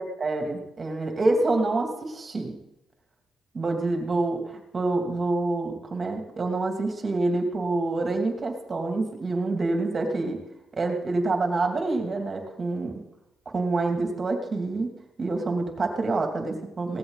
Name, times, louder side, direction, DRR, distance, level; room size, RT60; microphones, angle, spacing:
voice 1, 0.0-2.5 3.5-10.4 10.7-12.9 13.5-14.9 15.2-17.0, right 2 dB, 35° right, 3 dB, 2.8 m, -27 dB
17.5 x 14.0 x 4.1 m, 0.86 s
cardioid pair, 90°, 0 cm